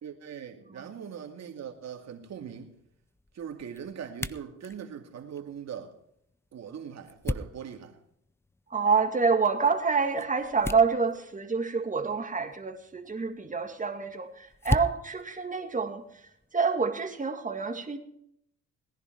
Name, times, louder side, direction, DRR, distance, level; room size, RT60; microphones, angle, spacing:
voice 1, 0.0-2.7 3.3-6.0 6.5-8.0, right 8 dB, 60° right, 2.4 m, -41 dB
sound 1, 1.7-16.5, left 2 dB, 10° left, 0.6 m, -40 dB
voice 2, 8.7-18.0, right 5 dB, 25° right, 2.1 m, -27 dB
19.0 x 10.5 x 4.6 m
cardioid pair, 90°, 30 cm